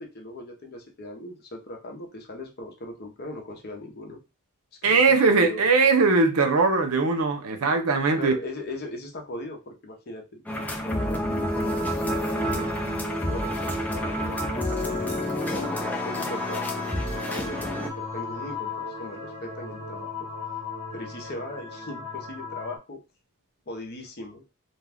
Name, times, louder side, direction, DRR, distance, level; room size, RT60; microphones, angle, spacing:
voice 1, 0.0-4.2 4.8-5.0 5.3-5.7 8.2-12.7 13.2-15.7 16.0-20.1 20.9-23.0 23.7-24.4, left 2 dB, 45° left, 0.7 m, -39 dB
voice 2, 4.8-8.4, right 4 dB, 75° right, 0.6 m, -20 dB
sound 1, 10.5-17.9, left 1 dB, 5° left, 0.4 m, -29 dB
sound 2, 11.5-22.8, left 2 dB, 50° right, 1.1 m, -35 dB
2.4 x 2.2 x 3.4 m
head